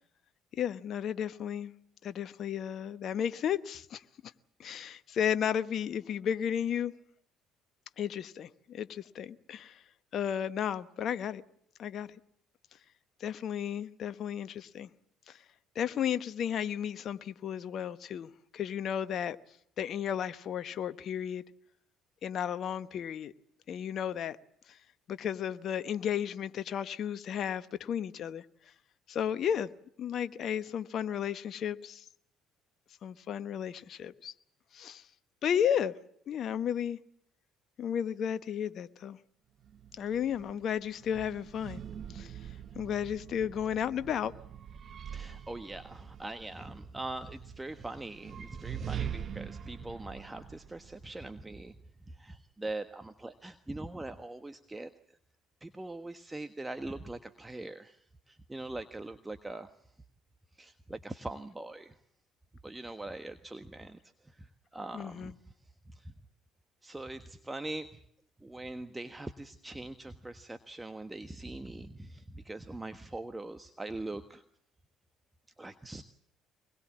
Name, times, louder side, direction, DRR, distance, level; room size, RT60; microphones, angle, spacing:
voice 1, 0.5-1.7 2.0-4.3 4.6-6.9 8.0-9.8 10.1-11.4 11.8-12.1 13.2-14.9 15.3-15.4 15.7-19.4 19.8-21.4 22.2-23.3 23.7-24.4 24.7-24.8 25.1-28.4 29.1-29.7 30.0-32.0 33.0-34.3 34.7-35.1 35.4-35.9 36.3-37.0 37.8-39.2 40.0-41.8 42.1-42.4 42.7-44.3 64.9-65.3, left 9 dB, 55° left, 1.1 m, -33 dB
sound 1, 39.6-51.7, right 9 dB, 50° right, 1.1 m, -44 dB
voice 2, 45.0-51.8 52.1-54.9 55.6-58.0 58.3-59.7 60.6-62.0 62.6-65.3 65.9-66.1 66.8-68.0 68.4-74.4 75.6-76.0, right 2 dB, 15° right, 1.4 m, -42 dB
24.0 x 21.0 x 7.4 m
hypercardioid pair, 55°, 0 cm